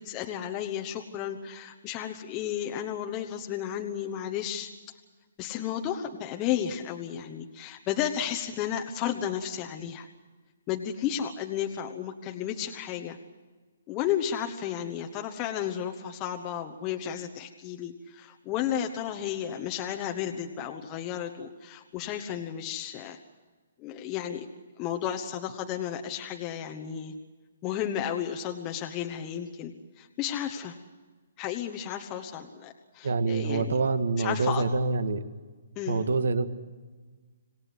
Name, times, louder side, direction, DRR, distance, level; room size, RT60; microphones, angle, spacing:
voice 1, 0.0-4.7 5.4-10.1 10.7-13.2 13.9-23.2 23.8-24.5 24.8-27.1 27.6-30.8 31.4-33.8 34.2-34.7 35.8-36.1, left 10 dB, 20° left, 3 dB, 1.2 m, -33 dB
voice 2, 33.0-35.2 35.9-36.5, right 4 dB, 75° right, 11 dB, 1.7 m, -26 dB
27.0 x 18.0 x 7.9 m, 1.3 s
hypercardioid pair, 165°, 0 cm